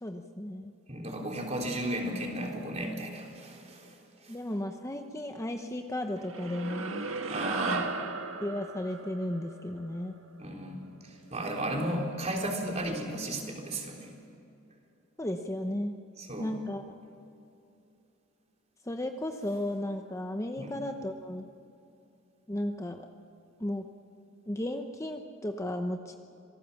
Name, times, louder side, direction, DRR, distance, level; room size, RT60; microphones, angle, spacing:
voice 1, 0.0-0.7 4.3-7.0 8.4-10.2 15.2-15.9 16.4-16.8 18.9-21.5 22.5-23.0 23.6-23.8 24.5-26.1, left 1 dB, 15° left, 5 dB, 0.9 m, -34 dB
voice 2, 0.9-4.0 4.2-4.4 7.3-7.9 10.4-14.1 16.2-16.6 20.6-20.8, right 1 dB, 35° right, 1 dB, 3.6 m, -34 dB
sound 1, 6.2-10.8, right 3 dB, 85° right, 1.7 m, -37 dB
26.5 x 18.5 x 7.1 m, 2.7 s
head